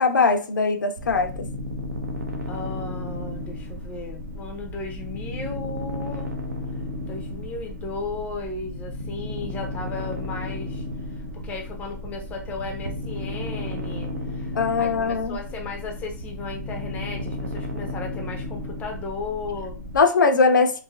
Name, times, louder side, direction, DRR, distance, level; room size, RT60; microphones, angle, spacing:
voice 1, 0.0-1.5 14.6-15.4 19.9-20.8, left 4 dB, 90° left, 0.4 m, -20 dB
sound 1, 1.0-20.0, left 1 dB, 70° right, 0.8 m, -33 dB
voice 2, 2.5-6.3 7.1-10.8 11.4-19.8, left 3 dB, 15° left, 0.5 m, -35 dB
3.1 x 2.5 x 2.3 m
hypercardioid pair, 145°, 10 cm